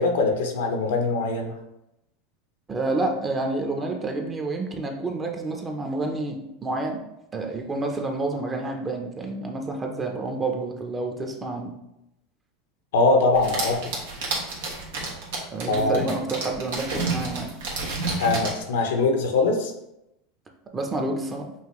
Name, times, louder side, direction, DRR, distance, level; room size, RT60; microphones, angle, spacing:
voice 1, 0.0-1.5 12.9-13.8 15.7-16.1 18.2-19.7, left 3 dB, 85° left, 3 dB, 0.9 m, -22 dB
voice 2, 2.7-7.0 7.3-11.7 15.5-17.5 20.7-21.5, right 2 dB, 20° right, 3 dB, 0.8 m, -29 dB
sound 1, 13.3-18.6, right 3 dB, 80° right, 1.3 m, -30 dB
5.6 x 2.7 x 3.2 m, 0.86 s
supercardioid pair, 110°, 0 cm